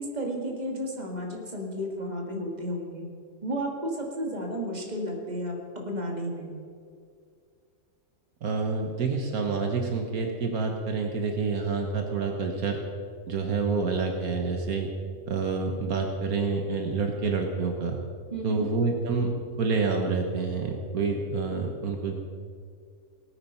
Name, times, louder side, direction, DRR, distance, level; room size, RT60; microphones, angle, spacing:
voice 1, 0.0-3.1 3.4-6.5 18.3-18.7, equal, 25° right, 0 dB, 2.2 m, -32 dB
voice 2, 8.4-12.8 13.3-14.9 15.3-18.0 18.4-19.3 19.6-22.1, right 4 dB, 70° right, 3 dB, 1.6 m, -28 dB
18.5 x 8.9 x 5.6 m, 2.2 s
omnidirectional pair, 1.6 m